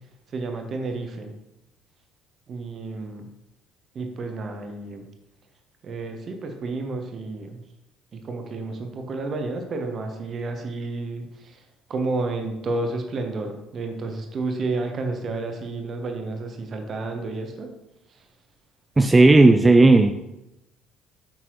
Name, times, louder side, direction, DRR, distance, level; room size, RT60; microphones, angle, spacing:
voice 1, 0.3-1.3 2.5-3.3 3.9-5.1 5.8-7.6 8.1-11.6 11.9-17.7, right 3 dB, 40° right, 4 dB, 1.1 m, -31 dB
voice 2, 19.0-20.1, right 2 dB, 20° right, 7 dB, 0.4 m, -13 dB
7.7 x 5.9 x 3.1 m, 0.90 s
figure-of-eight pair, 55°, 0 cm